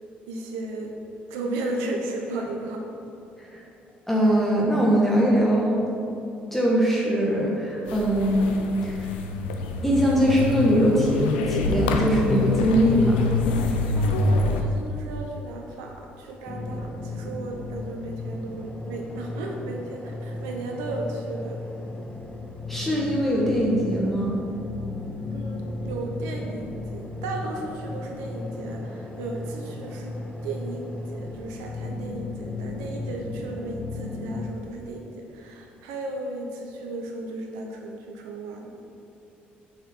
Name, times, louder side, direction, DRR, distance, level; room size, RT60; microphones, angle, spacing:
voice 1, 0.2-0.9 1.3-2.8 14.0-21.6 25.3-30.1 30.4-38.8, right 2 dB, 75° right, 1 dB, 0.9 m, -35 dB
voice 2, 4.1-5.8 6.5-9.1 9.8-13.2 22.7-24.4, equal, 5° left, -4 dB, 1.7 m, -22 dB
sound 1, 7.9-14.6, left 3 dB, 80° left, 0.6 m, -26 dB
sound 2, 16.5-34.5, left 2 dB, 20° left, 1.3 m, -35 dB
7.0 x 5.7 x 6.2 m, 2.8 s
hypercardioid pair, 50°, 5 cm